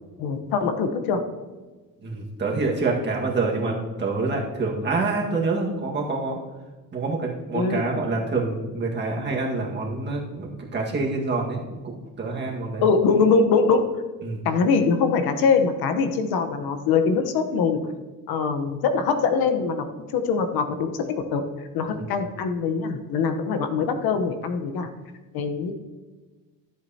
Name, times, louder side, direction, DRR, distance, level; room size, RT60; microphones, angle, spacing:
voice 1, 0.2-1.2 7.5-7.8 12.8-13.9 14.4-17.9 18.3-19.8 20.1-24.9 25.3-25.7, left 5 dB, 75° left, 7 dB, 1.1 m, -23 dB
voice 2, 2.0-6.4 6.9-12.9 14.2-14.4 21.9-22.1, right 3 dB, 30° right, -1 dB, 1.7 m, -27 dB
13.5 x 7.7 x 2.8 m, 1.3 s
cardioid pair, 140°, 37 cm